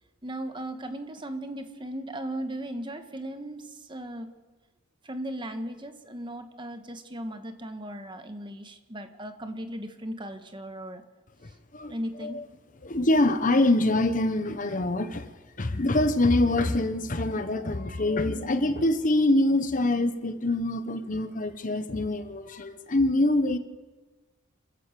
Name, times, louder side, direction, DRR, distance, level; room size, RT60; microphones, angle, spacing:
voice 1, 0.2-4.3 5.0-11.0 11.9-12.4, right 1 dB, 25° right, 7 dB, 1.5 m, -37 dB
voice 2, 11.4-11.9 12.2-12.4 12.8-15.3 15.6-23.6, left 2 dB, 40° left, 11 dB, 1.0 m, -25 dB
26.5 x 14.5 x 7.5 m, 1.3 s
head